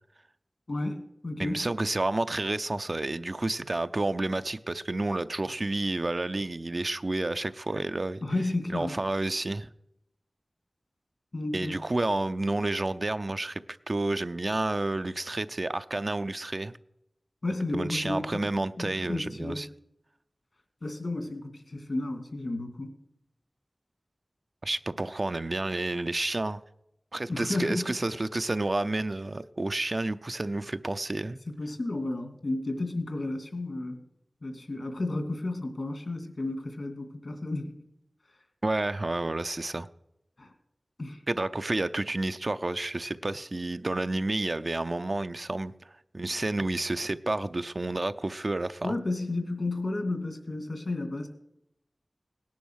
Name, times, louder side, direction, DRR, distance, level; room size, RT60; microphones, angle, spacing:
voice 1, 0.7-1.6 8.2-8.9 11.3-11.7 17.4-18.4 18.8-19.6 20.8-22.9 27.3-28.0 31.5-34.0 34.4-37.8 40.4-40.5 41.0-41.2 48.8-51.3, left 2 dB, 70° left, 2.4 m, -32 dB
voice 2, 1.4-8.2 8.7-9.7 11.5-13.6 13.9-16.7 17.7-19.7 24.6-26.6 27.1-31.4 38.6-39.9 41.3-48.9, right 2 dB, 50° right, 0.6 m, -30 dB
18.0 x 10.5 x 6.4 m
wide cardioid pair, 70°, 0 cm